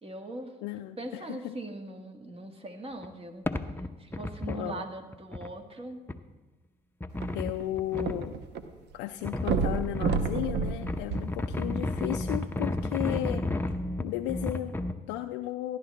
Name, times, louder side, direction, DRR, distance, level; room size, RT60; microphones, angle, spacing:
voice 1, 0.0-0.5 1.0-3.4 4.0-6.0, right 2 dB, 30° right, 5 dB, 1.5 m, -40 dB
voice 2, 0.6-1.6 4.5-4.9 7.3-8.4 8.9-13.7 14.0-15.8, left 14 dB, 90° left, 6 dB, 0.4 m, -34 dB
sound 1, 3.0-3.1 3.5-4.7 5.1-5.5 6.1-6.2 7.0-8.3 9.2-10.2 10.7-15.0, left 2 dB, 10° left, 0.7 m, -32 dB
sound 2, 7.1-8.6 8.9-9.0 9.4-12.0 12.7-12.8, right 5 dB, 70° right, 0.9 m, -30 dB
13.5 x 11.0 x 3.2 m, 1.2 s
supercardioid pair, 65°, 18 cm